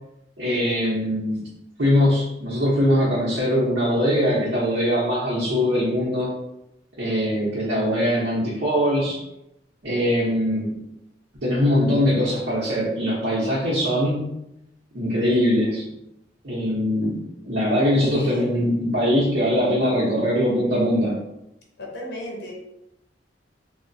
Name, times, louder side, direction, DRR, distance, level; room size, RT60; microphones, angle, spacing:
voice 1, 0.4-1.5 1.8-6.3 7.0-9.2 9.8-10.8 11.4-14.4 14.9-15.8 16.4-21.2, equal, 65° right, -8 dB, 0.7 m, -22 dB
voice 2, 18.1-18.6 21.8-22.5, equal, 65° left, -1 dB, 0.6 m, -34 dB
3.0 x 2.1 x 2.6 m, 0.86 s
head